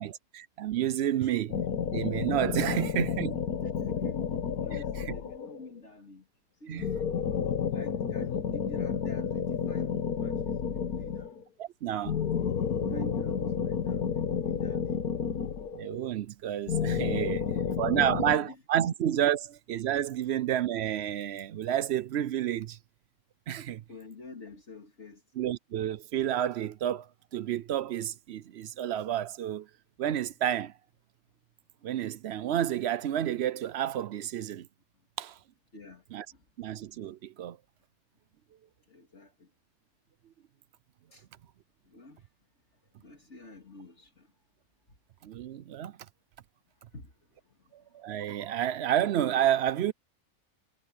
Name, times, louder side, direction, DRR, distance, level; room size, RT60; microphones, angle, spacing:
voice 1, 0.0-1.6 1.9-3.4 6.7-6.8 11.6-12.2 12.8-13.5 15.7-17.4 17.8-22.8 23.5-23.8 25.4-29.7 30.0-30.7 31.8-34.7 35.2-35.4 36.1-36.3 36.6-37.6 45.2-45.9 47.7-49.9, right 11 dB, 65° right, 0.7 m, -30 dB
sound 1, 1.5-5.7 6.8-11.4 12.0-16.1 16.7-18.4, left 7 dB, 90° left, 1.6 m, -31 dB
voice 2, 3.6-4.2 4.6-6.3 6.6-7.2 7.7-11.4 12.8-13.4 13.6-15.1 17.3-17.8 18.0-18.9 23.9-25.2 35.7-36.0 36.3-36.4 38.9-39.5 41.1-41.3 41.8-42.3 43.0-44.3 46.9-48.5, left 3 dB, 50° left, 2.7 m, -50 dB
omnidirectional pair, 1.5 m